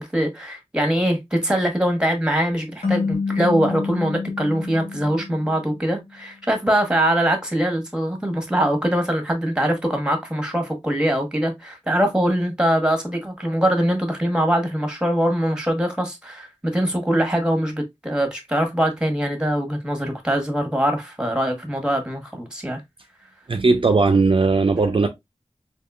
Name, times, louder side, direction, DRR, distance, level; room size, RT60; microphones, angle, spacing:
voice 1, 0.0-22.8, equal, 10° right, 1.1 m, -22 dB
sound 1, 2.8-6.0, left 4 dB, 80° left, 1.0 m, -28 dB
voice 2, 23.5-25.1, right 3 dB, 55° right, 0.4 m, -18 dB
3.5 x 2.9 x 2.3 m
wide cardioid pair, 55°, 11 cm